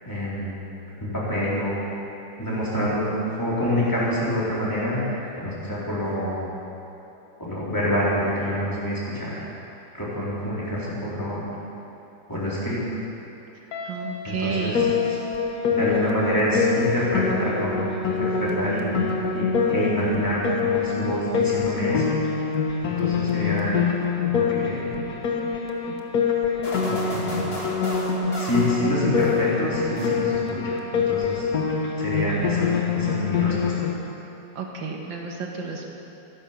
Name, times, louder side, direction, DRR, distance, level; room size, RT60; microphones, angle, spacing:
voice 1, 0.0-0.5 1.0-1.8 2.4-6.5 7.4-9.5 9.9-11.5 12.3-12.8 14.2-14.9 15.7-17.8 18.1-18.9 19.3-22.1 22.8-23.7 24.3-24.9 25.4-25.5 26.4-27.5 28.3-31.5 32.0-33.7, equal, 10° left, -8 dB, 4.1 m, -27 dB
Guitar, 13.7-16.5, left 2 dB, 75° left, 2.0 m, -36 dB
voice 2, 13.8-14.9 34.6-35.9, right 5 dB, 75° right, 0 dB, 2.4 m, -31 dB
Piano, 14.7-33.9, left 6 dB, 55° left, 1.7 m, -25 dB
sound 1, 26.6-29.6 30.0-30.6, left 1 dB, 30° left, 2.4 m, -35 dB
15.0 x 13.5 x 6.0 m, 2.9 s
omnidirectional pair, 2.0 m